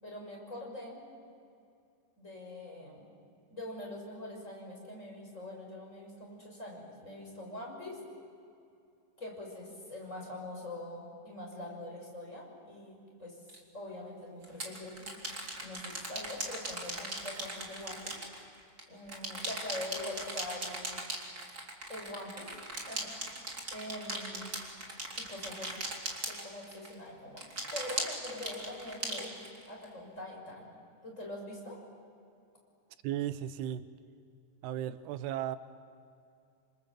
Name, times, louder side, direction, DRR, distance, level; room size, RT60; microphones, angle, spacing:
voice 1, 0.0-1.0 2.2-3.0 3.5-8.0 9.2-13.4 13.7-15.2 15.6-18.2 18.9-21.0 21.9-23.4 23.7-24.5 25.2-25.8 26.3-27.4 27.7-29.3 29.7-30.7 31.0-31.8, left 1 dB, 15° left, -1 dB, 6.4 m, -44 dB
sound 1, 13.5-13.6 14.4-18.8 19.1-26.9 27.4-29.8, right 2 dB, 25° right, 3.5 m, -39 dB
voice 2, 33.0-33.9 34.6-35.6, right 11 dB, 90° right, 12 dB, 2.9 m, -35 dB
29.0 x 26.5 x 7.6 m, 2.5 s
omnidirectional pair, 4.6 m